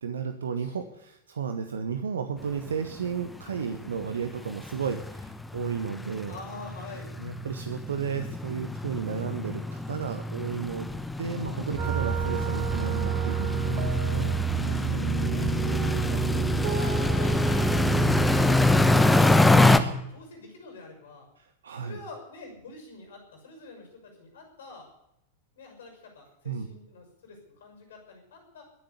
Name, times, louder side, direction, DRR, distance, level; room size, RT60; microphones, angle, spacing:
voice 1, 0.0-6.4 7.2-10.9 11.2-14.4 17.9-18.3 21.4-22.0 26.4-26.7, right 6 dB, 65° right, 9 dB, 1.1 m, -33 dB
sound 1, 2.7-2.8 3.0-3.2 3.6-3.7 3.9-19.8, left 2 dB, 5° left, 1.1 m, -25 dB
voice 2, 6.3-7.1 11.2-12.1 14.6-17.7 18.1-21.3 21.8-24.9 25.5-28.6, left 3 dB, 60° left, 4 dB, 6.1 m, -46 dB
sound 2, 11.8-18.9, right 8 dB, 45° right, 2.5 m, -29 dB
21.5 x 7.7 x 8.3 m, 0.81 s
figure-of-eight pair, 90°, 0 cm